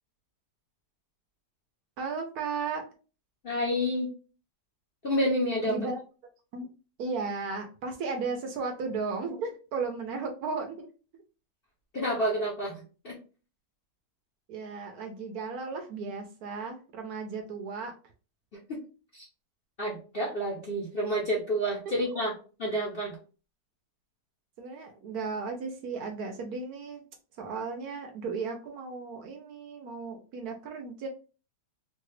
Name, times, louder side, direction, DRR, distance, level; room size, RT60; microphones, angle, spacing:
voice 1, 2.0-2.8 5.6-6.0 6.5-6.7 7.0-10.9 14.5-17.9 21.9-22.0 24.6-27.0 27.4-31.1, right 4 dB, 70° right, 4 dB, 1.0 m, -35 dB
voice 2, 3.4-4.1 5.0-5.8 11.9-13.2 18.7-18.8 19.1-19.2 19.8-22.3 22.6-23.1, equal, 45° left, -3 dB, 0.7 m, -29 dB
3.2 x 2.3 x 3.2 m, 0.35 s
omnidirectional pair, 1.9 m